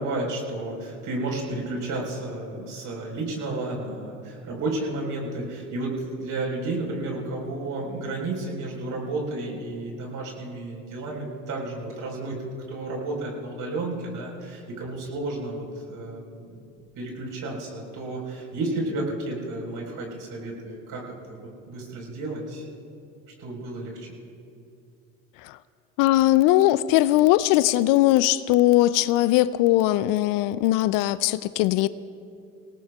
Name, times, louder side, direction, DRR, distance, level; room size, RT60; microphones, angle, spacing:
voice 1, 0.0-12.4 12.7-16.6 17.0-22.6 23.4-24.1, right 2 dB, 55° right, -1 dB, 4.6 m, -32 dB
voice 2, 26.0-31.9, left 15 dB, 60° left, 17 dB, 0.5 m, -20 dB
26.0 x 18.0 x 2.4 m, 2.5 s
hypercardioid pair, 60°, 38 cm